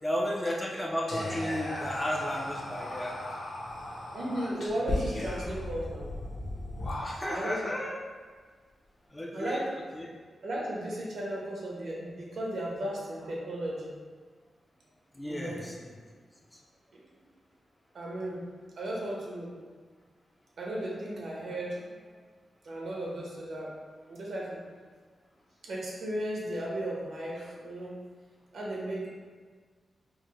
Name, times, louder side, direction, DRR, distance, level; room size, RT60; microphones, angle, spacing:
voice 1, 0.0-3.2 7.0-8.0 9.1-9.7 10.0-10.1 15.2-15.9, left 1 dB, 10° left, -2 dB, 0.4 m, -33 dB
Whispering, 1.1-7.5, left 1 dB, 60° left, 0.8 m, -36 dB
voice 2, 4.1-6.1 7.3-7.7 9.3-9.7 10.4-13.9 15.2-15.6 16.9-17.0 17.9-18.4 18.8-19.5 20.6-22.2 22.6-23.7 24.1-24.6 25.6-27.9 28.5-29.1, right 1 dB, 65° right, -4 dB, 0.8 m, -35 dB
4.8 x 2.1 x 3.0 m, 1.5 s
wide cardioid pair, 160°, 0 cm